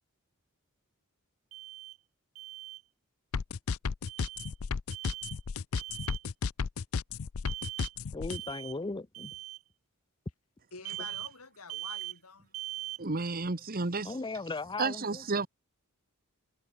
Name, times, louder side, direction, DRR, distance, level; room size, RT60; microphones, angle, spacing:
Alarm, 1.5-2.0 2.4-2.8 4.1-4.5 4.9-5.4 5.7-6.2 7.5-8.0 8.3-8.8 9.1-9.6 10.9-11.3 11.7-12.2 12.5-13.0, right 16 dB, 70° right, 1.2 m, -41 dB
sound 1, 3.3-8.4, left 5 dB, 70° left, 0.5 m, -33 dB
voice 1, 8.1-9.3 14.0-15.2, left 3 dB, 20° left, 0.6 m, -37 dB
voice 2, 10.7-12.5, left 4 dB, 90° left, 4.3 m, -48 dB
voice 3, 13.0-14.1 14.8-15.5, right 3 dB, 40° right, 1.3 m, -31 dB
head